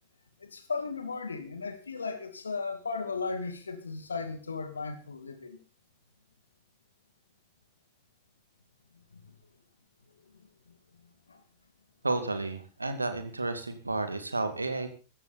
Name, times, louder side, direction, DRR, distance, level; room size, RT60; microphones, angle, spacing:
voice 1, 0.5-5.6 11.3-11.4, left 4 dB, 75° left, 2.6 m, -36 dB
voice 2, 12.0-14.9, right 2 dB, 80° right, 2.5 m, -32 dB
16.0 x 15.0 x 4.3 m
figure-of-eight pair, 90°, 0 cm